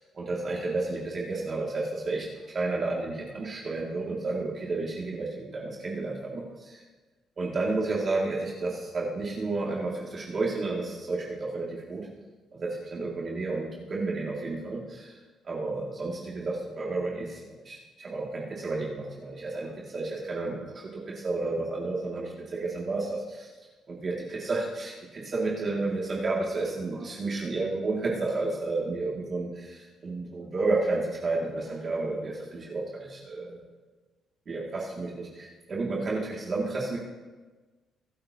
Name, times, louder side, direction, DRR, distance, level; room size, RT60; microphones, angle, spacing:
voice 1, 0.1-6.8 7.4-12.1 12.5-15.2 15.4-23.5 23.9-33.6 34.5-37.0, right 3 dB, 45° right, -4 dB, 2.4 m, -31 dB
24.5 x 8.7 x 2.9 m, 1.3 s
cardioid pair, 90°, 0 cm